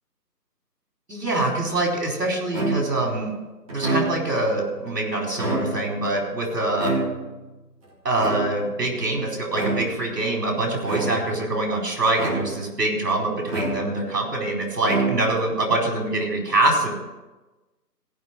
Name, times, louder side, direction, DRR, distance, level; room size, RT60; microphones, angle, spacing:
voice 1, 1.1-3.3 3.7-6.9 8.0-16.9, right 2 dB, 65° right, 0 dB, 4.4 m, -24 dB
sound 1, 2.5-3.1 3.7-4.4 5.3-6.0 6.8-7.5 8.2-8.8 9.5-10.1 10.8-11.4 12.2-12.8 13.5-14.2 14.8-15.5, right 3 dB, 20° right, 2.3 m, -28 dB
17.0 x 6.0 x 6.0 m, 1.1 s
figure-of-eight pair, 170°, 50 cm